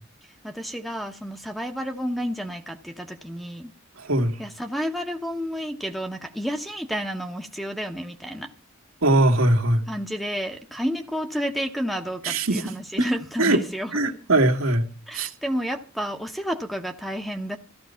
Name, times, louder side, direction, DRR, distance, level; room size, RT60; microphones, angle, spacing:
voice 1, 0.4-3.7 4.4-8.5 9.9-14.0 15.1-17.6, equal, ahead, 1.2 m, -30 dB
voice 2, 4.0-4.3 9.0-9.8 12.2-12.6 13.4-13.6 13.9-14.8 15.1-15.3, right 2 dB, 70° right, 2.1 m, -20 dB
15.0 x 13.0 x 5.7 m
head